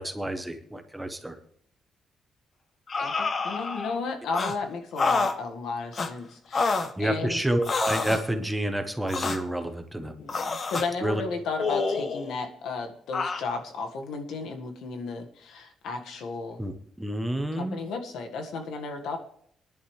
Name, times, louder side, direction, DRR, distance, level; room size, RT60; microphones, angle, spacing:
voice 1, 0.0-1.4 7.0-10.1 11.0-11.2 16.6-16.7 17.0-17.8, right 1 dB, 5° right, 6 dB, 0.9 m, -29 dB
voice 2, 2.9-7.5 10.2-16.6 17.6-19.2, left 4 dB, 85° left, 4 dB, 1.7 m, -34 dB
sound 1, 2.9-4.0 4.3-4.6 5.0-5.4 5.9-6.1 6.5-6.9 7.6-8.3 9.1-9.4 10.3-10.9 11.6-12.4 13.1-13.4, left 4 dB, 30° left, 0.8 m, -28 dB
23.0 x 10.5 x 3.3 m, 0.66 s
cardioid pair, 180°, 0 cm